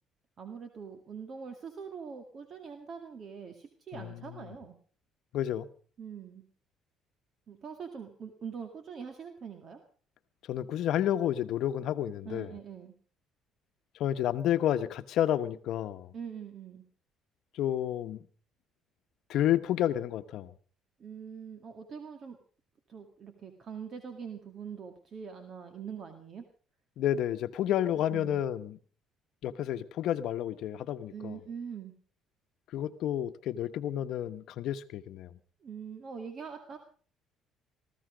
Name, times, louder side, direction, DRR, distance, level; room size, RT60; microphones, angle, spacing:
voice 1, 0.4-4.8 6.0-6.5 7.5-9.8 12.2-12.9 16.1-16.8 21.0-22.4 22.9-26.5 28.1-28.4 31.1-31.9 35.6-36.8, right 6 dB, 45° right, 2.0 m, -43 dB
voice 2, 3.9-4.5 5.3-5.7 10.5-12.5 14.0-16.1 17.5-18.2 19.3-20.5 27.0-28.8 29.4-31.4 32.7-35.4, left 11 dB, 65° left, 1.0 m, -30 dB
19.0 x 15.0 x 5.0 m
cardioid pair, 125°, 0 cm